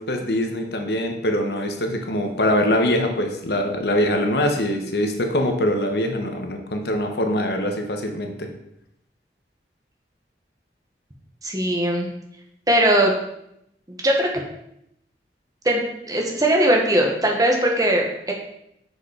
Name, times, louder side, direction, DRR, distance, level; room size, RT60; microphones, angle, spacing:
voice 1, 0.0-8.5, left 1 dB, 65° left, 4 dB, 1.0 m, -23 dB
voice 2, 11.4-12.1 12.7-13.1 13.9-14.3 15.6-15.8 16.1-18.3, right 1 dB, 20° right, 1 dB, 1.2 m, -19 dB
6.7 x 5.1 x 5.0 m, 0.78 s
head